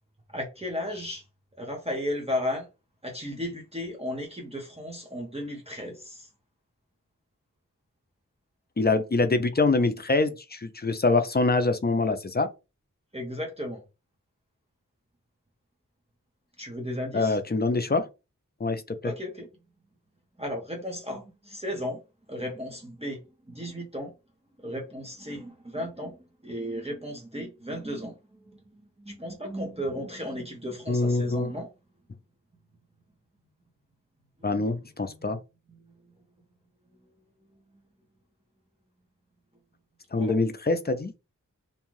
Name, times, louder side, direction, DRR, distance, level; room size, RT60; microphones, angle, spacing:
voice 1, 0.3-1.2 1.6-2.7 3.0-6.3 13.1-13.8 16.6-17.4 19.0-19.5 20.4-22.0 22.3-23.2 23.5-24.1 24.6-28.1 28.5-31.7 35.1-35.2 40.2-40.3, left 1 dB, 20° right, 0.8 m, -34 dB
voice 2, 8.8-12.5 17.1-18.1 18.6-19.1 30.9-31.5 34.4-35.4 40.1-41.1, left 3 dB, 30° left, 0.4 m, -25 dB
2.6 x 2.3 x 3.1 m
wide cardioid pair, 45°, 32 cm